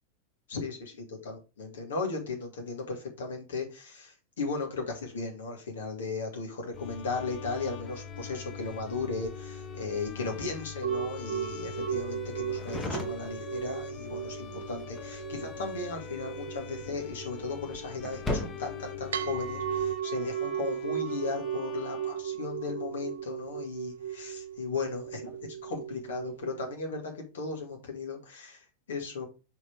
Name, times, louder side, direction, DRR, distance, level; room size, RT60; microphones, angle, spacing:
voice 1, 0.5-29.3, left 4 dB, 65° left, 1 dB, 2.2 m, -36 dB
Bowed string instrument, 6.7-22.7, left 7 dB, 25° left, 0.7 m, -47 dB
sound 1, 6.7-19.9, left 3 dB, 10° left, 1.3 m, -41 dB
sound 2, 10.8-26.7, right 9 dB, 65° right, 0.4 m, -36 dB
5.5 x 4.2 x 4.5 m, 0.29 s
figure-of-eight pair, 90°, 0 cm